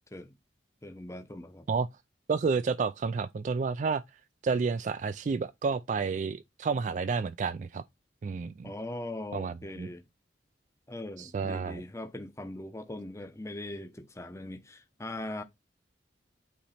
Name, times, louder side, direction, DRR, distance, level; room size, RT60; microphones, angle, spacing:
voice 1, 0.8-1.7 8.6-10.1 10.9-15.4, left 1 dB, 15° left, 0.7 m, -40 dB
voice 2, 2.3-4.0 4.4-7.8 8.2-8.7 9.3-9.9 11.2-11.8, right 5 dB, 45° right, 0.3 m, -30 dB
8.4 x 3.0 x 4.2 m
head